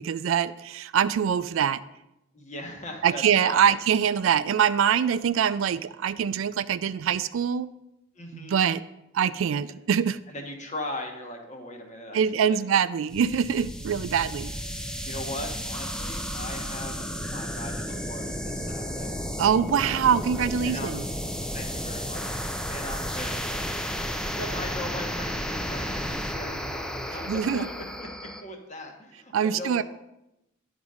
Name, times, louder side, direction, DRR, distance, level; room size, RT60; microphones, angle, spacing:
voice 1, 0.0-1.8 3.0-7.7 8.3-8.8 9.1-10.2 12.1-14.5 19.4-21.1 27.3-27.7 29.3-29.8, right 8 dB, 70° right, 15 dB, 0.3 m, -24 dB
voice 2, 2.3-3.7 8.2-8.6 10.3-12.6 15.0-19.1 20.6-21.1 21.5-22.2 22.7-23.9 24.2-28.1 28.4-29.8, left 1 dB, 35° left, 2 dB, 1.2 m, -39 dB
sound 1, 13.1-28.4, equal, 5° left, 0.5 m, -33 dB
10.5 x 4.1 x 4.9 m, 0.88 s
head